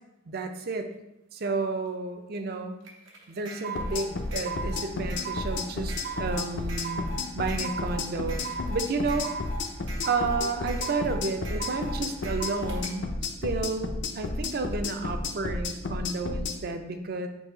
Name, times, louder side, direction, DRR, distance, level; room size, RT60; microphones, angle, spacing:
voice 1, 0.3-0.9 1.3-2.7 3.3-7.0 7.3-8.4 8.7-9.3 10.0-13.9 14.2-17.3, right 3 dB, 55° right, 7 dB, 0.4 m, -31 dB
sound 1, 2.8-12.9, right 3 dB, 90° right, 0.8 m, -38 dB
sound 2, 3.7-16.6, left 3 dB, 70° left, 0.5 m, -32 dB
4.0 x 2.7 x 4.8 m, 0.89 s
head